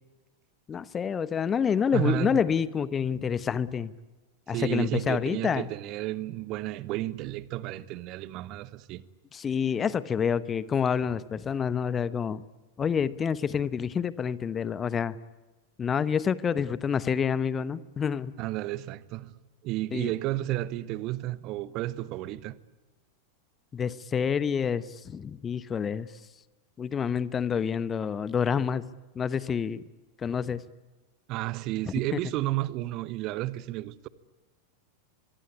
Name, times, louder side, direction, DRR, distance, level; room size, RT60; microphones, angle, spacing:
voice 1, 0.7-3.9 4.5-5.7 9.3-12.4 12.8-15.2 15.8-18.4 19.9-20.1 23.7-26.1 26.8-29.8 30.2-30.6 31.9-32.2, left 7 dB, 20° left, 0.9 m, -28 dB
voice 2, 1.9-2.4 4.5-9.0 18.4-19.3 19.6-22.6 31.3-34.1, right 16 dB, 40° right, 1.1 m, -32 dB
24.0 x 23.0 x 9.9 m
figure-of-eight pair, 90°, 0 cm